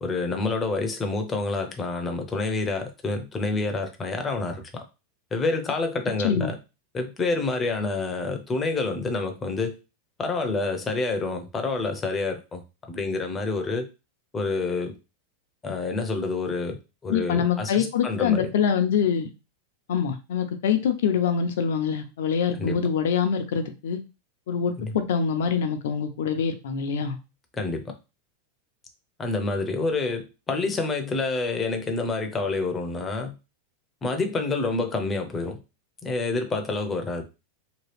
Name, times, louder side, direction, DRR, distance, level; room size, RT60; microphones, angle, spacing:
voice 1, 0.0-4.8 5.3-6.6 6.9-9.8 10.2-12.6 12.9-13.9 14.3-15.0 15.6-16.8 17.0-18.5 22.6-22.8 24.8-24.9 27.6-27.9 29.2-33.4 34.0-35.6 36.0-37.2, left 3 dB, 20° left, 0.6 m, -28 dB
voice 2, 17.1-19.3 19.9-24.0 24.5-27.2, left 7 dB, 80° left, 0.6 m, -25 dB
2.9 x 2.3 x 3.2 m
supercardioid pair, 135°, 0 cm